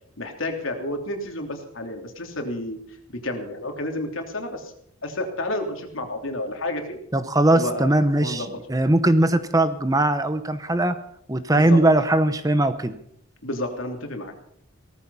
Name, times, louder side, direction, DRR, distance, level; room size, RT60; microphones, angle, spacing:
voice 1, 0.2-2.8 3.1-4.7 5.0-7.0 7.5-7.9 8.2-8.5 11.5-11.8 13.4-14.3, left 1 dB, 75° left, 4 dB, 3.1 m, -30 dB
voice 2, 7.1-8.4 8.7-11.0 11.3-12.9, right 1 dB, 15° right, 11 dB, 0.9 m, -20 dB
18.0 x 14.0 x 5.6 m, 0.68 s
head